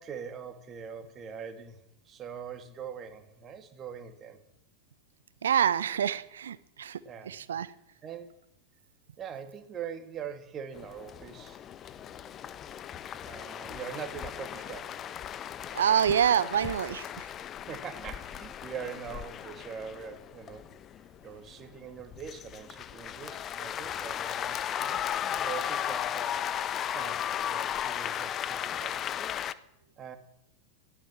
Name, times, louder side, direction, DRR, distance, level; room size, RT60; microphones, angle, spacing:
voice 1, 0.0-4.4 7.0-7.4 8.0-8.4 9.2-11.6 13.2-14.9 17.7-20.7 21.2-25.0 25.4-26.5 26.9-29.1 30.0-30.2, right 7 dB, 25° right, 7 dB, 2.6 m, -42 dB
voice 2, 5.4-7.7 15.7-17.3, right 9 dB, 65° right, 18 dB, 1.0 m, -27 dB
sound 1, 10.7-29.5, left 10 dB, 30° left, 1.0 m, -36 dB
22.0 x 16.0 x 7.5 m, 0.79 s
figure-of-eight pair, 90°, 0 cm